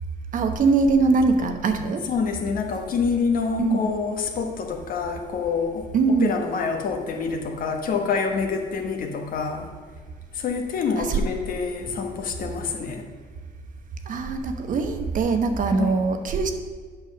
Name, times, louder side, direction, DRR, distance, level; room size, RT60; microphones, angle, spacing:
voice 1, 0.3-2.0 3.6-3.9 5.9-6.4 11.0-11.2 14.1-16.5, right 4 dB, 50° right, 7 dB, 1.0 m, -22 dB
voice 2, 2.0-5.9 6.2-9.7 10.3-13.0 15.7-15.9, left 5 dB, 55° left, 4 dB, 1.3 m, -26 dB
8.7 x 5.7 x 6.1 m, 1.5 s
cardioid pair, 110°, 17 cm